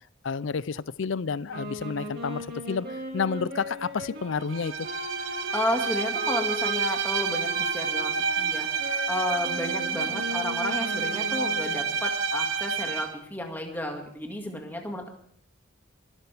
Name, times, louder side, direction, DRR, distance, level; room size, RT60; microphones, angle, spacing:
voice 1, 0.2-2.9 3.1-4.9, left 5 dB, 65° left, 19 dB, 0.5 m, -30 dB
sound 1, 1.5-11.9, equal, 50° right, 2.9 m, -38 dB
Bowed string instrument, 4.5-13.2, right 5 dB, 70° right, 1.1 m, -29 dB
voice 2, 5.2-15.1, left 1 dB, 10° left, 2 dB, 2.0 m, -33 dB
24.0 x 12.5 x 3.5 m, 0.62 s
head